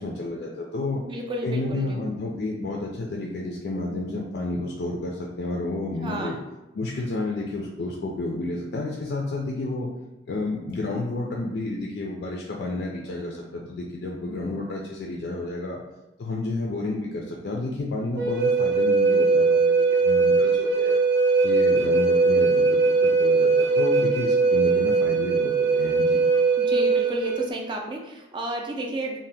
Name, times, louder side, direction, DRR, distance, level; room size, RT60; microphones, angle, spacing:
voice 1, 0.0-1.0 1.4-6.4 6.7-9.9 10.3-15.8 16.2-19.7 20.0-21.0 21.4-26.2, left 2 dB, 70° left, -2 dB, 0.4 m, -30 dB
voice 2, 0.9-2.0 6.0-6.4 26.6-29.2, right 1 dB, 25° right, 1 dB, 0.3 m, -32 dB
Wind instrument woodwind instrument, 18.2-27.5, right 4 dB, 85° right, 0.5 m, -20 dB
2.7 x 2.1 x 3.2 m, 1.0 s
head